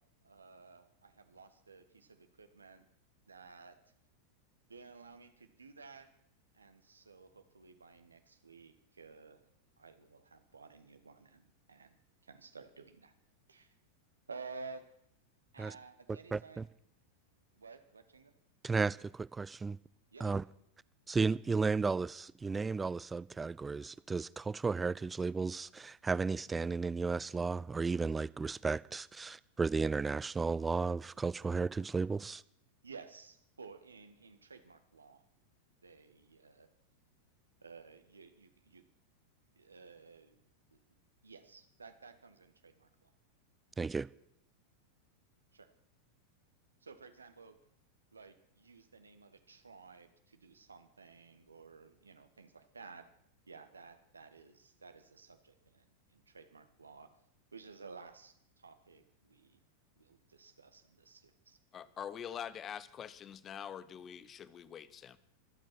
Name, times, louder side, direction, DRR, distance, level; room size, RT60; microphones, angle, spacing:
voice 1, 0.2-2.9 3.3-3.8 4.7-6.1 6.5-9.4 9.8-12.0 12.2-13.1 13.5-13.7 14.3-14.8 15.5-16.7 17.5-18.3 20.1-20.5 32.8-35.2 35.8-36.7 37.6-38.9 39.6-40.4 41.2-43.1 45.5-45.7 46.8-47.6 48.1-53.1 53.5-57.1 57.5-59.6 60.0-61.6, right 4 dB, 75° right, 1.6 m, -54 dB
voice 2, 16.3-16.6 18.6-19.8 20.2-20.4 21.1-32.4 43.8-44.1, right 4 dB, 15° right, 0.5 m, -34 dB
voice 3, 61.7-65.2, left 8 dB, 25° left, 0.9 m, -45 dB
24.0 x 9.1 x 6.0 m
figure-of-eight pair, 90°, 0 cm